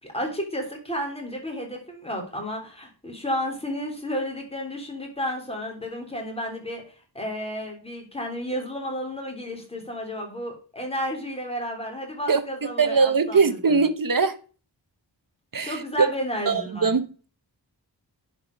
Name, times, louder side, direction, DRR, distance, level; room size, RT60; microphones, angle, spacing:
voice 1, 0.0-13.8 15.6-16.9, equal, 15° left, 3.4 m, -32 dB
voice 2, 12.8-14.4 15.5-16.1 16.5-17.0, right 4 dB, 50° right, 1.1 m, -21 dB
10.5 x 4.7 x 5.2 m
wide cardioid pair, 90°, 43 cm